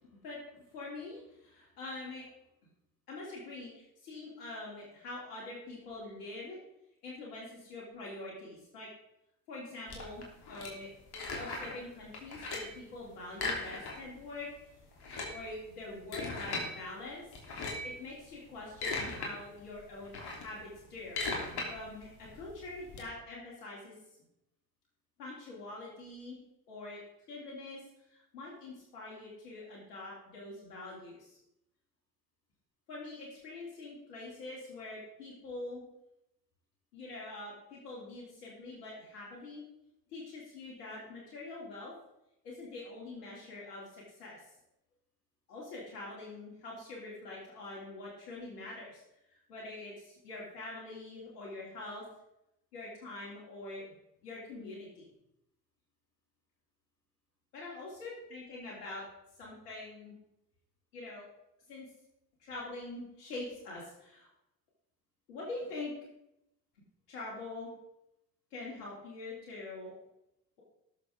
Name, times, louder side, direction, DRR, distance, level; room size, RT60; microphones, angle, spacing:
voice 1, 0.2-2.2 3.1-6.6 7.0-8.9 9.5-10.9 11.4-14.5 15.3-17.4 17.8-21.2 21.7-23.9 25.2-26.4 26.7-27.0 27.3-27.8 28.1-31.4 32.9-35.8 36.9-39.6 40.1-41.9 42.4-44.4 45.5-49.0 49.3-52.0 52.7-53.8 54.2-55.0 57.5-59.0 59.4-60.2 60.9-61.3 61.7-61.9 62.4-64.3 65.3-65.9 67.1-67.7 68.5-69.9, left 2 dB, 75° left, -5 dB, 3.3 m, -44 dB
sound 1, 9.9-11.8 12.1-12.8 13.3-14.2 14.5-14.6 14.9-16.7 17.3-18.0 18.5-19.3 19.7-23.0, left 3 dB, 55° left, 3.4 m, -38 dB
18.5 x 7.1 x 3.8 m, 0.83 s
hypercardioid pair, 50°, 46 cm